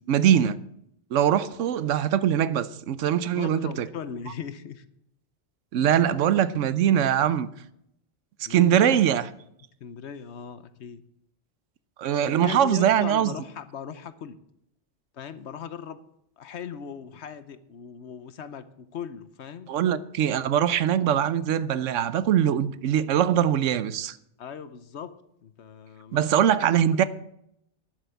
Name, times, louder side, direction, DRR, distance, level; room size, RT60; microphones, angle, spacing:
voice 1, 0.1-0.6 1.1-3.9 5.7-7.5 8.5-9.2 12.0-13.3 19.7-24.2 26.1-27.0, right 10 dB, 90° right, 1.0 m, -22 dB
voice 2, 3.3-4.8 5.8-6.1 8.4-9.0 9.8-11.0 12.2-14.4 15.1-16.0 16.4-19.7 24.4-25.1 25.4-26.7, left 7 dB, 70° left, 1.1 m, -39 dB
11.0 x 7.8 x 7.0 m
omnidirectional pair, 1.2 m